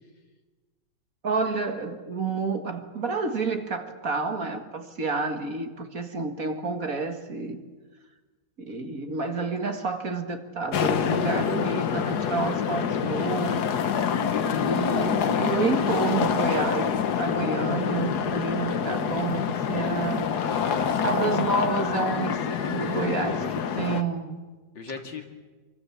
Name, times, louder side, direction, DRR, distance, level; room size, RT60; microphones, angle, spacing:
voice 1, 1.2-7.6 8.6-13.7 14.5-19.4 19.7-20.3 21.0-24.4, right 4 dB, 45° right, 2.2 m, -29 dB
sound 1, 10.7-24.0, left 7 dB, 60° left, 1.6 m, -26 dB
voice 2, 14.1-14.8 20.4-21.3 24.7-25.3, left 5 dB, 85° left, 3.2 m, -37 dB
27.0 x 24.0 x 7.3 m
omnidirectional pair, 2.0 m